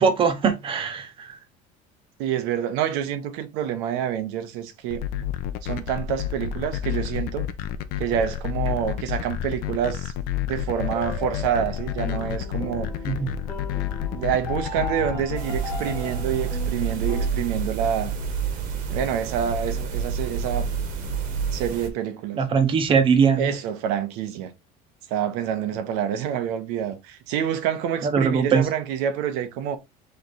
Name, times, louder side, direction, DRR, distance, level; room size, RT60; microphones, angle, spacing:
voice 1, 0.0-1.3 13.1-13.3 22.4-23.5 28.0-28.7, right 6 dB, 30° right, 0.8 m, -21 dB
voice 2, 2.2-5.0 5.6-7.5 8.0-10.1 10.4-12.9 14.1-18.2 18.9-20.7 21.5-22.4 23.3-24.5 25.1-29.8, right 9 dB, 85° right, 1.0 m, -27 dB
sound 1, 4.9-15.4, left 11 dB, 60° left, 0.6 m, -29 dB
sound 2, 10.7-17.3, left 3 dB, 10° left, 1.2 m, -37 dB
sound 3, 15.4-21.9, right 5 dB, 50° right, 1.2 m, -28 dB
3.8 x 3.4 x 4.1 m
cardioid pair, 170°, 18 cm